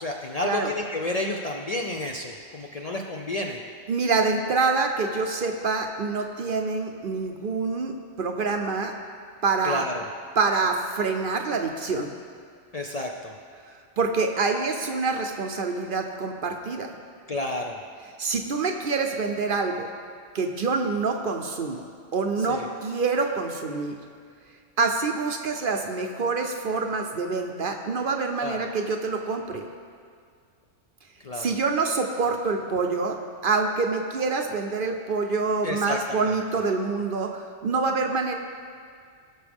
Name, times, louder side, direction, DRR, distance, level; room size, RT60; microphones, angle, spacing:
voice 1, 0.0-3.6 9.6-10.1 12.7-13.4 17.3-17.8 22.4-22.7 28.4-28.7 31.2-31.5 35.6-36.4, left 2 dB, 45° left, 1 dB, 0.5 m, -31 dB
voice 2, 3.9-7.9 8.2-8.9 9.4-9.8 10.4-12.1 14.0-17.0 18.2-19.9 20.3-21.8 22.1-23.9 24.8-29.6 31.3-33.2 33.4-38.3, right 4 dB, 55° right, 4 dB, 0.8 m, -26 dB
17.5 x 6.2 x 3.5 m, 2.1 s
omnidirectional pair, 1.2 m